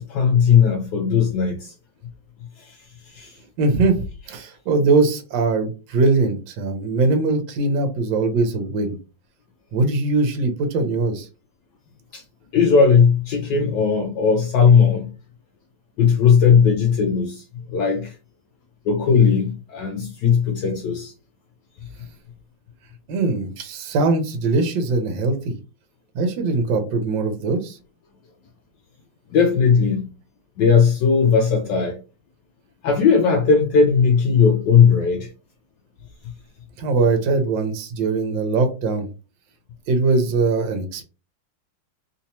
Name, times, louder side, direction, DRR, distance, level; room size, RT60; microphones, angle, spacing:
voice 1, 0.0-1.7 2.6-3.4 12.1-12.2 12.5-15.1 16.0-18.2 18.8-21.1 29.3-30.1 30.6-32.0 32.8-35.3 36.2-36.3, left 6 dB, 75° left, 1.1 m, -17 dB
voice 2, 3.6-9.0 9.7-11.3 23.1-25.5 26.1-27.8 36.8-39.1 39.9-41.0, right 3 dB, 70° right, 1.4 m, -21 dB
3.5 x 2.8 x 2.9 m
omnidirectional pair, 2.2 m